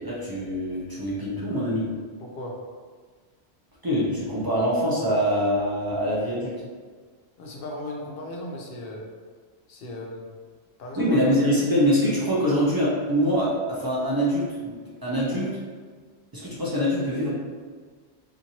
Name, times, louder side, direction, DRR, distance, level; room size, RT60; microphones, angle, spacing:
voice 1, 0.0-1.9 3.8-6.5 11.0-14.7 15.0-15.5 16.3-17.3, equal, 35° right, -7 dB, 0.4 m, -24 dB
voice 2, 2.2-2.5 7.4-9.0 9.7-10.2 10.8-11.2 11.6-11.7, left 1 dB, 65° left, -1 dB, 0.7 m, -36 dB
2.9 x 2.5 x 2.7 m, 1.5 s
omnidirectional pair, 1.1 m